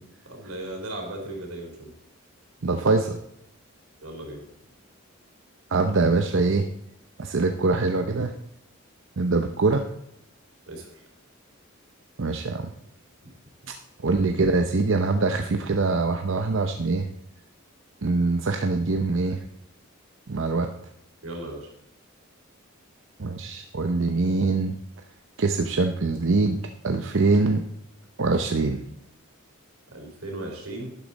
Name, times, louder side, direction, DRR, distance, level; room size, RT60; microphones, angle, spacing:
voice 1, 0.3-1.9 4.0-4.4 10.7-11.0 21.2-21.7 29.9-31.0, right 1 dB, 85° right, 1 dB, 3.8 m, -36 dB
voice 2, 2.6-3.2 5.7-6.7 7.2-8.3 9.2-9.9 12.2-12.7 14.0-17.1 18.0-19.4 20.3-20.7 23.2-24.8 25.4-27.6 28.2-28.8, right 3 dB, 60° right, 5 dB, 0.7 m, -23 dB
12.0 x 10.5 x 4.1 m, 0.77 s
head